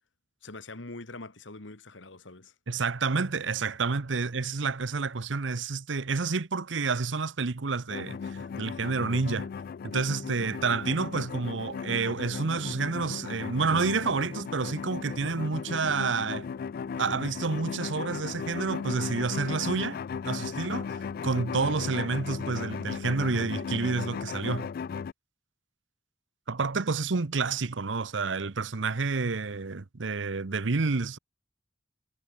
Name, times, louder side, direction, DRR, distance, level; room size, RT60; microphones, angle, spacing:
voice 1, 0.4-2.5, left 2 dB, 85° left, 2.2 m, -43 dB
voice 2, 2.7-9.5 9.8-16.5 17.0-20.0 20.2-24.7 26.5-31.2, right 4 dB, 80° right, 0.9 m, -29 dB
sound 1, 7.9-25.1, left 6 dB, 50° left, 0.3 m, -36 dB
head